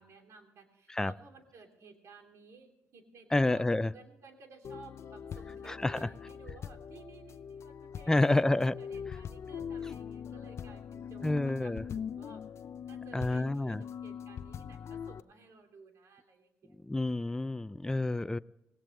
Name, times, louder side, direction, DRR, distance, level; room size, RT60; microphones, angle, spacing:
voice 1, 0.0-8.5 8.8-12.4 12.9-13.8 14.0-16.7, right 4 dB, 75° right, 4 dB, 3.1 m, -55 dB
voice 2, 3.3-3.9 5.7-6.1 8.1-8.8 11.2-11.8 13.1-13.8 16.9-18.4, left 2 dB, 10° left, 14 dB, 0.5 m, -28 dB
sound 1, 4.6-15.2, left 7 dB, 65° left, 0.6 m, -42 dB
19.0 x 18.0 x 3.3 m, 0.90 s
cardioid pair, 65°, 5 cm